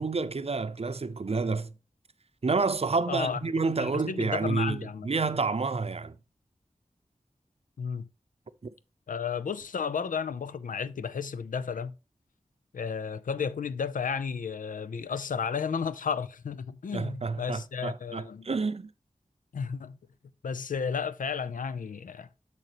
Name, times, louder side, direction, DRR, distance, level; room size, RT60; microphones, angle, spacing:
voice 1, 0.0-1.7 2.4-6.2 16.9-18.9, right 4 dB, 50° right, 0.6 m, -29 dB
voice 2, 3.1-3.4 3.8-5.1 7.8-8.1 9.1-11.9 12.7-18.5 19.5-20.0 20.4-22.3, left 6 dB, 90° left, 0.5 m, -33 dB
6.8 x 6.5 x 3.0 m
cardioid pair, 40°, 13 cm